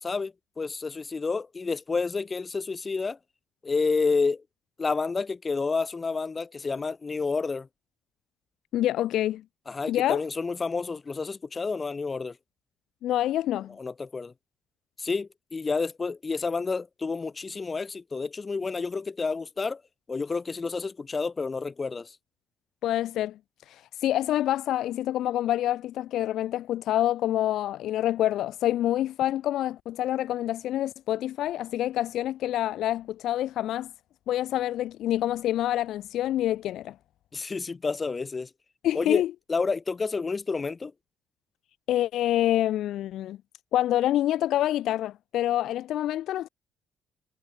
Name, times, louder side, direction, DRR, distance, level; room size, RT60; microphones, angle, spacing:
voice 1, 0.0-3.2 3.6-4.4 4.8-7.7 9.7-12.4 13.8-14.3 15.0-19.8 20.1-22.2 37.3-38.5 38.9-40.9, left 4 dB, 30° left, 2.8 m, -29 dB
voice 2, 8.7-9.4 9.9-10.2 13.0-13.7 22.8-23.4 23.7-33.9 34.3-36.9 38.8-39.3 41.9-43.4 43.7-46.5, left 13 dB, 80° left, 0.3 m, -27 dB
cardioid pair, 90°, 0 cm